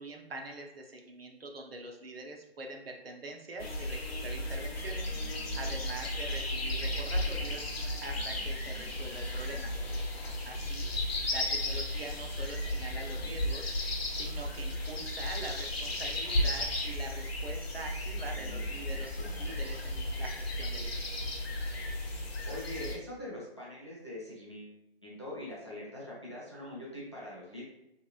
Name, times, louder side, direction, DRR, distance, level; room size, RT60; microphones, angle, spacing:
voice 1, 0.0-5.2 5.5-7.7 8.0-9.7 10.4-10.9 11.3-13.7 14.1-20.9, right 2 dB, 65° right, 2 dB, 0.6 m, -44 dB
sound 1, 3.6-22.9, left 1 dB, 65° left, 0.8 m, -34 dB
voice 2, 13.1-13.4 17.7-18.9 19.2-19.5 22.4-24.7 25.0-27.6, left 1 dB, 25° left, -6 dB, 0.5 m, -44 dB
2.9 x 2.9 x 2.3 m, 0.88 s
hypercardioid pair, 175°, 32 cm